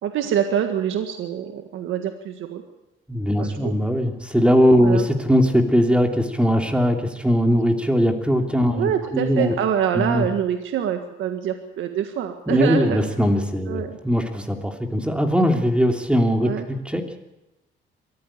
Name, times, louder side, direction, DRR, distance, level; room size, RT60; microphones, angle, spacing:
voice 1, 0.0-2.6 3.4-3.7 4.8-5.1 8.7-13.0 13.7-14.0 16.4-16.7, right 9 dB, 80° right, 6 dB, 1.7 m, -25 dB
voice 2, 3.1-9.5 9.9-10.3 12.5-17.0, equal, 5° right, 4 dB, 3.1 m, -20 dB
23.0 x 14.5 x 9.0 m, 0.97 s
cardioid pair, 90°, 20 cm